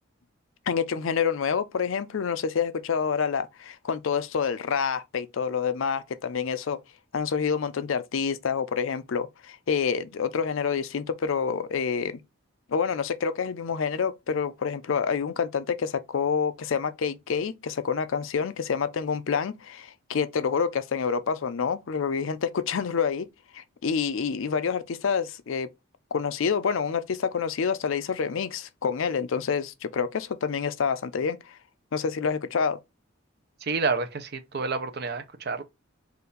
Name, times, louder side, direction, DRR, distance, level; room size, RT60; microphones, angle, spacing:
voice 1, 0.7-6.8 7.1-12.2 12.7-23.3 23.5-25.7 26.1-31.6 31.9-32.8, left 6 dB, 65° left, 0.4 m, -27 dB
voice 2, 33.6-35.6, right 4 dB, 45° right, 0.6 m, -29 dB
4.1 x 2.5 x 3.9 m
head